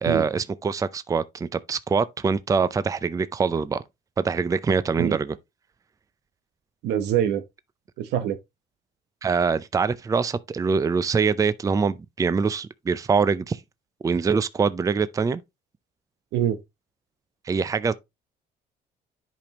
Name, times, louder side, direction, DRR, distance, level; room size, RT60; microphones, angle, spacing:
voice 1, 0.0-3.8 4.2-5.4 9.2-13.6 14.0-15.4 17.5-17.9, right 5 dB, 20° right, 0.5 m, -24 dB
voice 2, 6.8-7.4 8.0-8.4 16.3-16.6, right 10 dB, 85° right, 1.0 m, -24 dB
10.0 x 5.2 x 2.9 m
cardioid pair, 110°, 17 cm